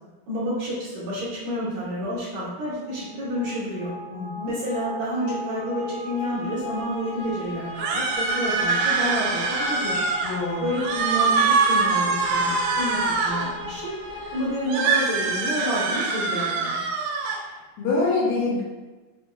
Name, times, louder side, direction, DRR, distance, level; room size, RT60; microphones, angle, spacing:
voice 1, 0.3-3.9 4.5-10.0 10.6-13.9 14.3-16.8, equal, 70° right, -9 dB, 2.2 m, -29 dB
sound 1, 2.8-15.6, left 1 dB, 55° right, 1.3 m, -37 dB
voice 2, 4.1-4.5 10.2-10.7 17.8-18.6, left 3 dB, 80° left, -4 dB, 2.4 m, -25 dB
sound 2, 7.8-10.4 10.7-13.5 14.7-17.4, right 4 dB, 90° right, 2.6 m, -24 dB
6.1 x 2.2 x 2.3 m, 1.2 s
omnidirectional pair, 4.7 m